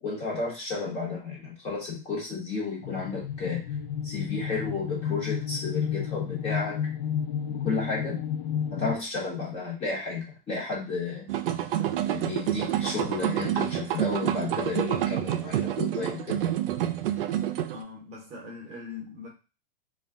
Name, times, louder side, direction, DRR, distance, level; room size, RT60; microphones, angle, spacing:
voice 1, 0.0-3.6 4.0-6.8 7.4-8.2 8.7-11.3 12.1-16.4, left 4 dB, 20° left, -3 dB, 0.9 m, -32 dB
sound 1, 2.8-9.0, left 8 dB, 60° left, 0.4 m, -31 dB
sound 2, 11.3-17.8, right 11 dB, 75° right, 0.4 m, -28 dB
voice 2, 17.7-19.3, left 4 dB, 25° right, -2 dB, 0.8 m, -41 dB
2.3 x 2.1 x 3.5 m, 0.32 s
hypercardioid pair, 140°, 29 cm